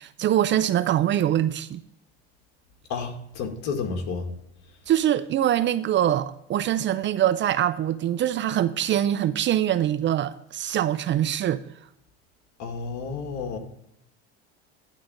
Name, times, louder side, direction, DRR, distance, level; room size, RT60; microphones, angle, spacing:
voice 1, 0.0-1.8 4.9-11.6, right 11 dB, 35° right, 0.5 m, -23 dB
voice 2, 2.9-4.3 12.6-13.6, left 5 dB, 60° left, 2.0 m, -31 dB
11.0 x 3.9 x 7.0 m
supercardioid pair, 95°, 32 cm